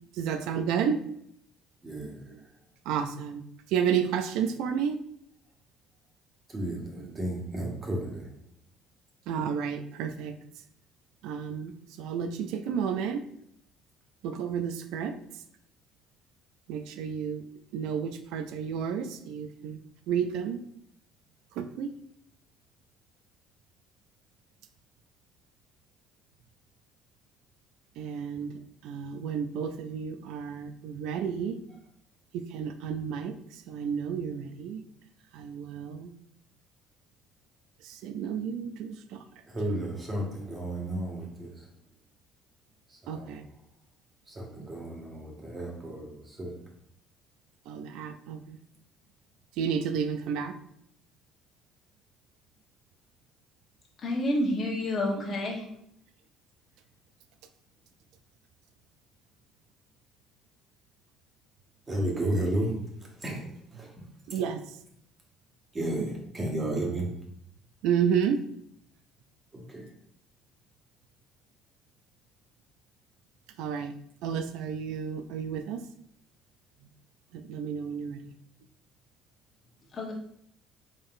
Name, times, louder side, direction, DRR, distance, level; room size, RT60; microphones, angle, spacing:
voice 1, 0.2-1.0 2.3-2.4 2.9-3.4 3.7-5.0 7.0-7.1 9.3-10.4 11.2-11.7 12.0-13.2 14.2-15.2 16.7-17.4 17.7-19.8 20.1-20.6 21.6-21.9 28.0-28.5 28.8-31.6 32.3-33.3 33.7-34.8 35.3-36.1 37.8-39.2 43.1-43.4 47.7-48.6 49.6-50.5 64.3-64.6 67.8-68.4 73.6-73.9 74.2-75.8 77.3-78.3, right 7 dB, 80° right, 9 dB, 0.4 m, -31 dB
voice 2, 1.8-2.2 6.5-8.3 39.5-41.7 42.9-43.3 44.3-46.5 61.9-62.7 63.2-63.4 63.7-63.9 65.7-67.1 69.5-69.9, right 1 dB, 30° right, -1 dB, 1.5 m, -33 dB
voice 3, 54.0-55.6 79.9-80.1, left 1 dB, 45° left, -2 dB, 1.1 m, -29 dB
3.8 x 3.6 x 2.6 m, 0.71 s
supercardioid pair, 75°, 0 cm